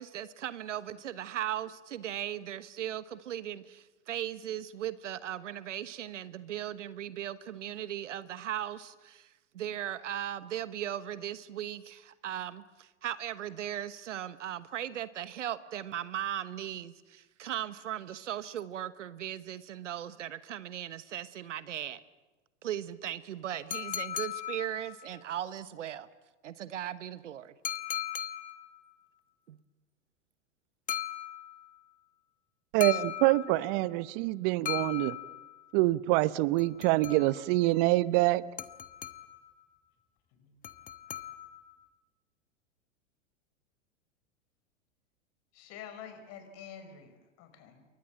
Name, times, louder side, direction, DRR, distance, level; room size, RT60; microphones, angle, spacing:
voice 1, 0.0-22.0 22.6-26.1 26.4-27.5 29.5-29.6, right 11 dB, 75° right, 1.2 m, -38 dB
sound 1, 23.7-25.2 27.6-28.8 30.9-31.8 32.8-33.8 34.7-35.7 36.6-37.5 38.6-39.5 40.6-41.7, left 11 dB, 20° left, 1.2 m, -38 dB
voice 2, 32.7-35.2 35.7-38.4, right 19 dB, 45° right, 1.0 m, -26 dB
voice 3, 45.5-47.8, left 8 dB, 45° left, 5.3 m, -48 dB
28.5 x 23.5 x 7.5 m
hypercardioid pair, 105°, 37 cm